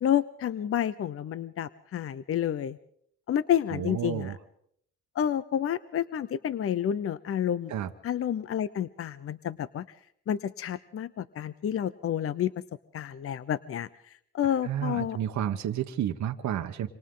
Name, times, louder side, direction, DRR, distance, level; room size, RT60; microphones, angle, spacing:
voice 1, 0.0-2.8 3.3-4.3 5.1-7.7 8.0-9.9 10.3-12.6 12.9-13.9 14.3-15.2, left 10 dB, 50° left, 15 dB, 0.7 m, -29 dB
voice 2, 3.7-4.4 7.7-7.9 14.4-16.9, right 10 dB, 70° right, 6 dB, 1.2 m, -31 dB
27.5 x 25.5 x 3.9 m, 0.69 s
cardioid pair, 90°, 30 cm